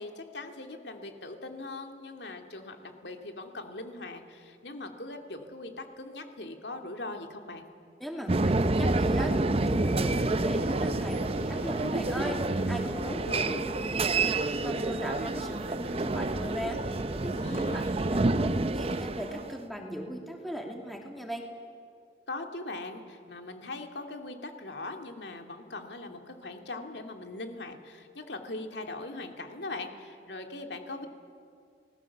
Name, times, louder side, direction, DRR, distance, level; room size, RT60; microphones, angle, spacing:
voice 1, 0.0-7.7 13.0-13.6 17.4-17.8 22.3-31.1, left 2 dB, 70° left, 4 dB, 2.5 m, -40 dB
voice 2, 8.0-17.8 18.1-21.4, equal, ahead, 0 dB, 2.7 m, -38 dB
sound 1, 8.3-19.6, right 2 dB, 35° right, 0.7 m, -28 dB
sound 2, 9.9-19.4, right 1 dB, 75° right, 4.7 m, -44 dB
29.5 x 20.0 x 7.3 m, 2.3 s
head